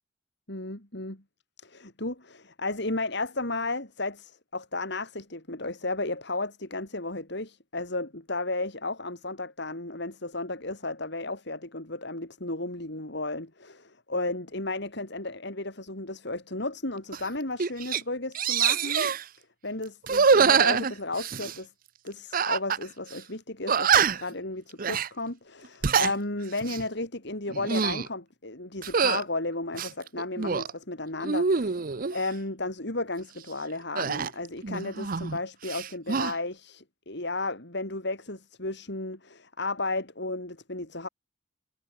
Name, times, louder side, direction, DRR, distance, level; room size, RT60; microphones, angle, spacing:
voice 1, 0.5-1.2 1.6-19.1 19.6-21.7 22.0-41.1, left 2 dB, 60° left, 4.7 m, -34 dB
sound 1, 17.1-17.3 17.6-18.0 18.3-19.2 20.0-21.6 22.3-22.8 23.1-23.2 23.7-24.3 24.8-25.1 25.6-26.1 26.6-26.8 27.5-28.1 28.8-29.2 29.7-30.7 31.2-32.2 34.0-35.4 35.6-36.3, right 6 dB, 45° right, 0.7 m, -25 dB
head